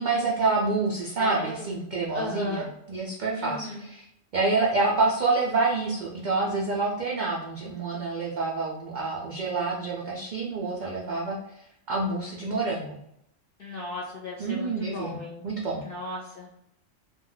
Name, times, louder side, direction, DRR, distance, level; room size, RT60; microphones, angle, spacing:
voice 1, 0.0-4.1 4.3-11.4 11.9-13.0 14.4-15.8, right 3 dB, 65° right, -3 dB, 0.4 m, -27 dB
voice 2, 1.2-1.7 2.1-2.7 3.4-3.8 13.6-15.4 15.8-16.5, left 2 dB, 60° left, -3 dB, 0.6 m, -36 dB
2.3 x 2.2 x 3.7 m, 0.78 s
omnidirectional pair, 1.3 m